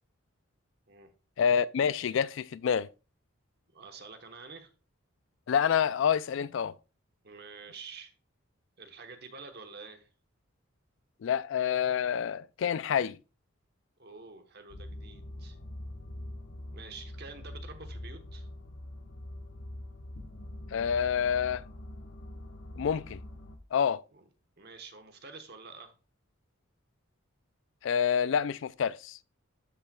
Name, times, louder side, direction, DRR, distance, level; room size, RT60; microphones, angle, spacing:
voice 1, 1.4-2.9 5.5-6.8 11.2-13.2 20.7-21.6 22.8-23.2 23.7-24.0 27.8-29.2, left 7 dB, 60° left, 0.3 m, -27 dB
voice 2, 3.7-4.7 7.2-8.1 8.8-10.1 14.0-15.6 16.7-18.5 24.1-24.2 24.6-25.9, right 4 dB, 50° right, 1.1 m, -48 dB
sound 1, 14.7-23.6, left 1 dB, 90° left, 1.2 m, -44 dB
12.5 x 5.4 x 2.3 m
head